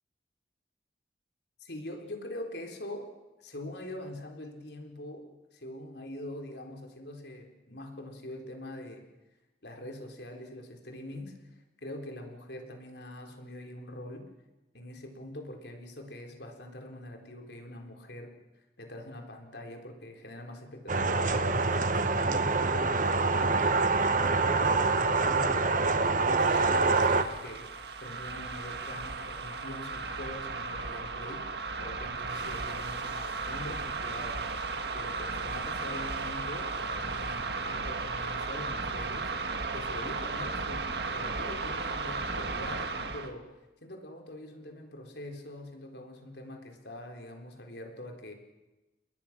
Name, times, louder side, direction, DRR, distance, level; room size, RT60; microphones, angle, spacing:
voice 1, 1.6-3.1 3.4-9.1 9.6-11.4 11.8-14.3 14.7-18.4 18.8-34.5 34.9-39.3 39.7-43.5 43.8-48.3, left 1 dB, 65° left, 3 dB, 4.0 m, -43 dB
sound 1, 20.9-27.2, right 3 dB, 45° right, 1.3 m, -25 dB
sound 2, 26.3-43.3, right 3 dB, 65° right, 1.8 m, -35 dB
29.5 x 21.0 x 6.1 m, 1.0 s
head